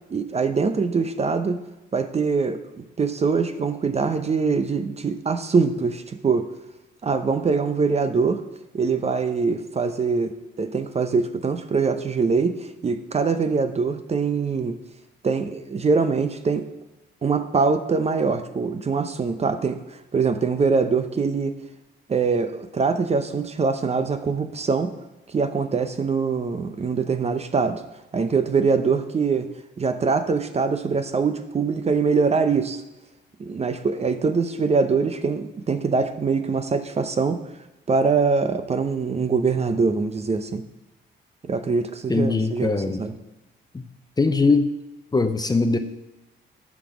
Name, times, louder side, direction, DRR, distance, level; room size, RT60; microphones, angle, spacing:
voice 1, 0.1-1.6 1.9-6.5 7.0-8.4 8.7-10.3 10.6-14.8 15.2-16.7 17.2-19.8 20.1-21.5 22.1-24.9 25.3-27.8 28.1-29.5 29.8-32.8 33.4-37.4 37.9-40.6 41.5-43.1, right 4 dB, 30° right, 9 dB, 0.7 m, -23 dB
voice 2, 42.1-43.1 43.7-43.8 44.2-44.7 45.1-45.8, left 3 dB, 20° left, 8 dB, 0.7 m, -21 dB
10.5 x 6.2 x 4.9 m, 1.0 s
cardioid pair, 90°, 20 cm